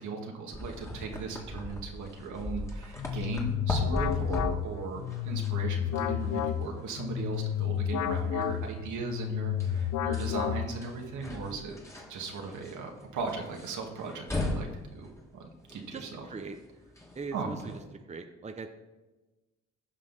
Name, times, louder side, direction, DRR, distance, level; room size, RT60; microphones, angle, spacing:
voice 1, 0.0-11.8 12.1-16.3 17.3-17.8, right 4 dB, 75° right, 2 dB, 1.9 m, -38 dB
sound 1, 0.5-17.9, left 1 dB, 10° left, 2.0 m, -40 dB
sound 2, 3.0-11.0, left 10 dB, 70° left, 0.7 m, -31 dB
voice 2, 15.9-16.6 17.1-17.8 18.1-18.7, right 4 dB, 25° right, 7 dB, 0.8 m, -40 dB
15.0 x 5.5 x 4.1 m, 1.1 s
cardioid pair, 90°, 30 cm